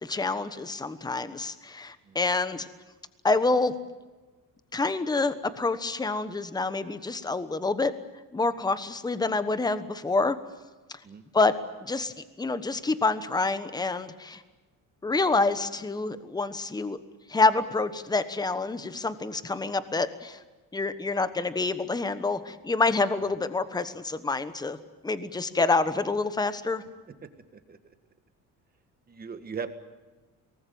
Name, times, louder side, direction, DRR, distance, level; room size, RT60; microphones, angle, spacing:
voice 1, 0.0-2.7 3.2-3.7 4.7-7.9 8.3-10.4 10.9-11.0 11.3-11.5 11.8-14.4 15.0-17.0 17.3-20.4 20.7-24.8 25.0-26.8, left 3 dB, 10° left, 12 dB, 1.2 m, -27 dB
voice 2, 27.2-27.9 29.1-29.7, right 6 dB, 30° right, 8 dB, 1.8 m, -39 dB
23.0 x 19.5 x 9.3 m, 1.2 s
cardioid pair, 135°, 32 cm